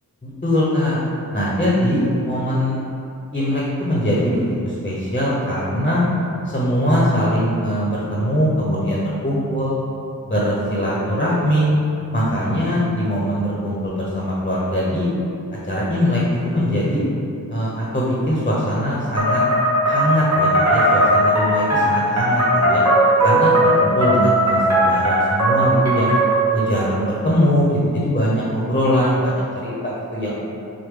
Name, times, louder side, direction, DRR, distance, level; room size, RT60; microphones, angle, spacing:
voice 1, 0.2-1.0 1.3-2.8 3.3-6.0 6.4-9.7 10.3-11.7 12.1-15.1 15.7-17.0 17.5-19.4 19.9-22.8 23.2-26.1 26.5-30.3, equal, 25° left, -6 dB, 0.8 m, -21 dB
sound 1, 19.2-26.6, right 1 dB, 45° right, 1.5 m, -17 dB
6.3 x 2.2 x 3.7 m, 2.6 s
wide cardioid pair, 85°, 36 cm